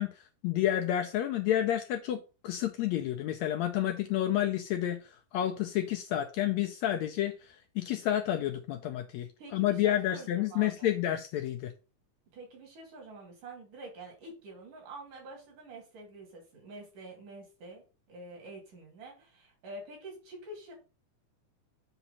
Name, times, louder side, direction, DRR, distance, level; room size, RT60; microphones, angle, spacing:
voice 1, 0.0-11.7, left 12 dB, 80° left, 1.6 m, -30 dB
voice 2, 9.4-10.9 12.3-20.8, right 2 dB, 70° right, 4.4 m, -47 dB
8.0 x 3.0 x 5.4 m
omnidirectional pair, 3.8 m